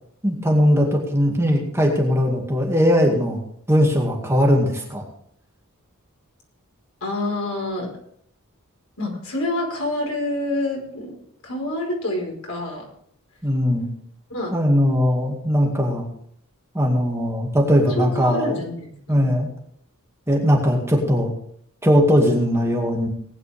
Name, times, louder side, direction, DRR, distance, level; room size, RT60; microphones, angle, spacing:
voice 1, 0.2-3.4 3.7-5.0 13.4-13.9 14.5-16.1 16.7-18.5 19.1-19.5 20.3-21.3 21.8-23.1, equal, 10° right, -1 dB, 2.2 m, -19 dB
voice 2, 7.0-7.9 9.0-11.2 11.4-12.9 14.3-14.5 18.0-19.3, left 1 dB, 75° left, 0 dB, 4.7 m, -27 dB
18.5 x 9.9 x 3.5 m, 0.64 s
head